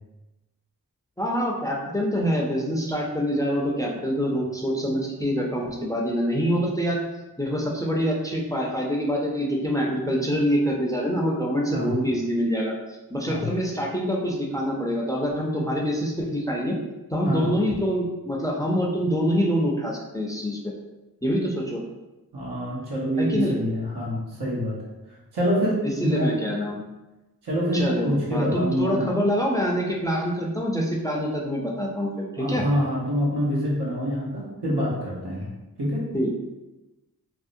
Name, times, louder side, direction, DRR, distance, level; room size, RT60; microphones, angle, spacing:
voice 1, 1.2-7.0 7.4-16.7 17.1-20.6 21.2-21.8 23.2-23.5 25.8-26.8 27.7-32.6 36.1-36.3, equal, 10° left, -1 dB, 0.4 m, -25 dB
voice 2, 22.3-24.8 25.3-26.4 27.4-29.1 32.4-35.5 35.8-36.1, equal, 90° right, -4 dB, 0.8 m, -26 dB
2.6 x 2.0 x 2.5 m, 1.1 s
wide cardioid pair, 50°, 38 cm